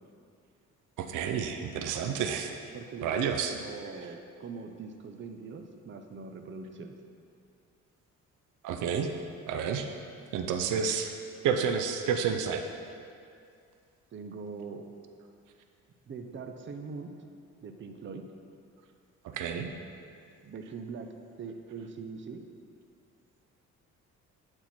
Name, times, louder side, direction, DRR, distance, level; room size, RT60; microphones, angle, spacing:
voice 1, 1.0-2.5 3.0-3.5 8.6-9.1 9.5-9.9 10.3-11.1 11.4-12.6 19.2-19.7, right 7 dB, 85° right, 6 dB, 0.6 m, -30 dB
voice 2, 2.7-7.0 14.1-14.9 16.1-17.2 17.6-18.3 20.4-22.5, right 4 dB, 40° right, 5 dB, 0.6 m, -42 dB
9.3 x 4.4 x 4.3 m, 2.4 s
cardioid pair, 90°, 30 cm